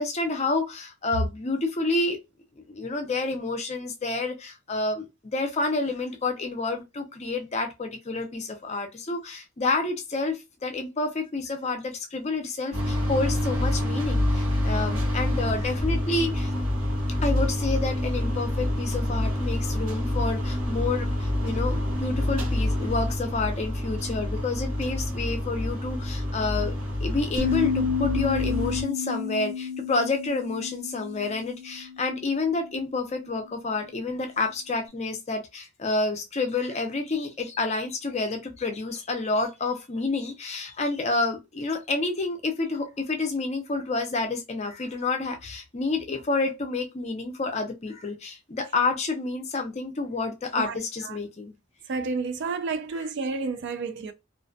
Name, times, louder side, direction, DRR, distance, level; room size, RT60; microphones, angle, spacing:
voice 1, 0.0-2.2 2.7-16.5 17.2-26.7 27.0-51.5, left 3 dB, 30° left, 0.5 m, -29 dB
sound 1, 12.7-28.8, left 1 dB, 75° right, 1.0 m, -27 dB
sound 2, 27.4-32.5, left 6 dB, 35° right, 0.7 m, -30 dB
voice 2, 51.9-54.1, right 4 dB, 55° right, 0.3 m, -30 dB
2.5 x 2.1 x 2.5 m
head